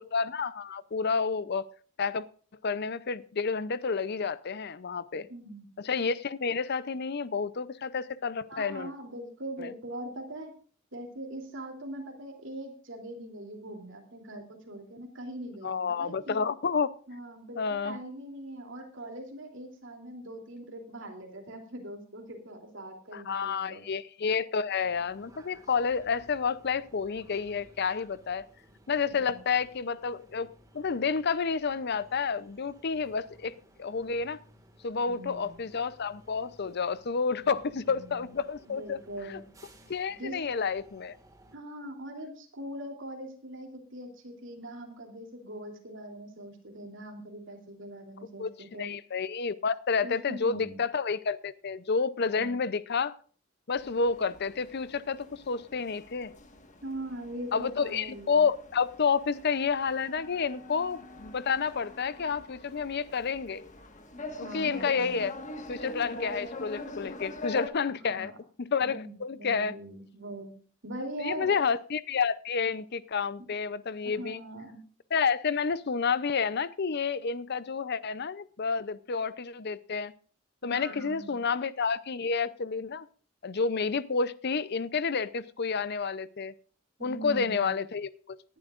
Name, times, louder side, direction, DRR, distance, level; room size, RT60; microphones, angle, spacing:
voice 1, 0.1-1.7 2.0-2.2 2.6-5.3 5.8-8.9 9.6-9.7 15.6-16.9 17.6-18.0 23.1-28.4 28.9-30.5 30.7-34.4 34.8-39.0 39.3-39.4 39.9-41.1 48.4-53.1 53.7-56.3 57.5-63.7 64.4-65.3 65.7-68.3 68.6-69.7 71.2-74.4 75.1-80.1 80.6-83.1 83.4-86.5 87.0-88.4, left 5 dB, 55° left, 17 dB, 0.6 m, -30 dB
voice 2, 5.3-5.7 8.5-10.5 10.9-16.4 17.1-23.8 29.1-29.4 35.0-35.6 37.4-37.5 37.9-38.3 38.6-39.4 40.2-40.4 41.5-48.9 50.0-50.8 52.2-52.6 56.8-58.4 64.4-65.3 68.0-68.3 68.8-70.5 70.8-71.5 74.0-74.8 80.6-81.4 87.0-87.8, right 1 dB, 65° right, 2 dB, 3.1 m, -42 dB
sound 1, 24.8-41.6, equal, 15° right, 1.9 m, -58 dB
sound 2, 53.8-67.7, left 1 dB, 40° left, 1.6 m, -44 dB
18.5 x 11.0 x 2.5 m, 0.43 s
head